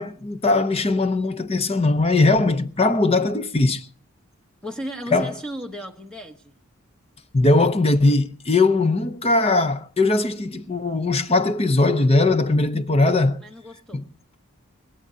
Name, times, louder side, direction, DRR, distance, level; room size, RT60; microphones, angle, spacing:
voice 1, 0.0-3.9 5.1-5.3 7.3-13.4 13.9-14.0, left 2 dB, 25° left, 0.6 m, -20 dB
voice 2, 4.6-6.5 13.4-14.1, equal, 5° left, 1.0 m, -35 dB
22.0 x 17.0 x 2.7 m
head